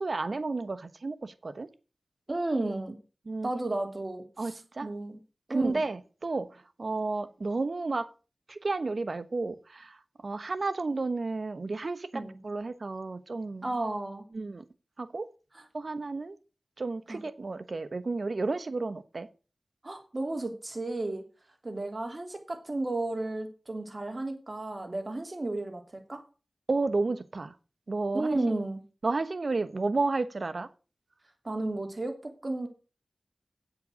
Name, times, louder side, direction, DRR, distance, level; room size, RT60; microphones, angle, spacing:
voice 1, 0.0-1.7 3.3-3.5 4.4-4.9 5.5-8.1 8.5-13.7 14.3-14.6 15.0-15.3 15.7-16.3 16.8-19.3 26.7-27.5 27.9-28.4 29.0-30.7, right 3 dB, 65° right, 12 dB, 1.1 m, -32 dB
voice 2, 2.3-3.0 3.4-4.5 4.8-5.2 5.5-5.8 12.1-12.4 13.6-14.2 17.1-17.2 19.8-21.2 21.6-26.2 28.1-28.8 31.4-32.7, right 2 dB, 45° right, 5 dB, 3.1 m, -33 dB
8.4 x 7.9 x 6.3 m, 0.34 s
cardioid pair, 45°, 0 cm